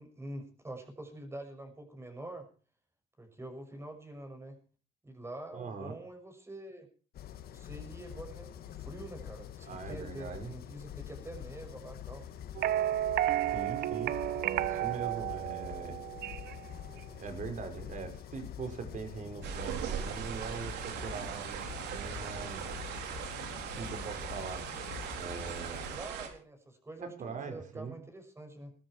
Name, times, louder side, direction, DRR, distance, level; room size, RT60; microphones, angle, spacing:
voice 1, 0.0-2.5 3.2-4.6 5.0-6.9 7.5-12.3 25.9-28.7, right 1 dB, 15° right, 6 dB, 6.3 m, -46 dB
voice 2, 5.5-5.9 9.7-10.5 13.5-14.2 14.7-16.0 16.9-21.6 21.9-22.7 23.8-24.7 25.1-26.0 27.0-28.0, right 5 dB, 50° right, 6 dB, 5.6 m, -42 dB
sound 1, 7.1-26.0, left 10 dB, 65° left, 1.8 m, -46 dB
sound 2, 12.6-16.6, right 13 dB, 65° right, 1.0 m, -32 dB
sound 3, 19.4-26.3, right 8 dB, 80° right, 4.2 m, -39 dB
20.5 x 13.5 x 4.5 m, 0.39 s
cardioid pair, 110°, 17 cm